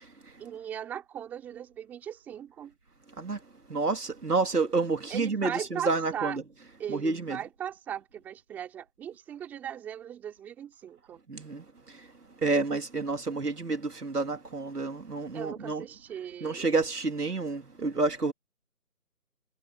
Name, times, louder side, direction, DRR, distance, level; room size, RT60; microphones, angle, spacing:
voice 1, 0.4-2.7 5.1-6.4 6.8-11.2 15.3-16.7, right 9 dB, 5° right, 3.7 m, -38 dB
voice 2, 3.7-6.4 6.9-7.4 11.3-12.1 12.4-15.8 16.4-18.3, right 3 dB, 80° right, 3.7 m, -29 dB
figure-of-eight pair, 170°, 46 cm